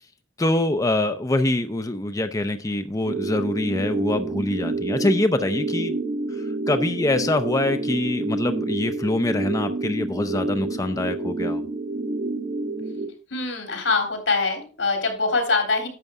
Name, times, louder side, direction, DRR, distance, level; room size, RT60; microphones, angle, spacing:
voice 1, 0.4-5.9 6.3-11.6, left 1 dB, 20° left, 9 dB, 0.5 m, -24 dB
sound 1, 3.1-13.1, right 2 dB, 50° right, 1.5 m, -28 dB
voice 2, 13.3-15.9, left 3 dB, 85° left, 4 dB, 3.7 m, -23 dB
11.0 x 7.9 x 3.6 m, 0.37 s
head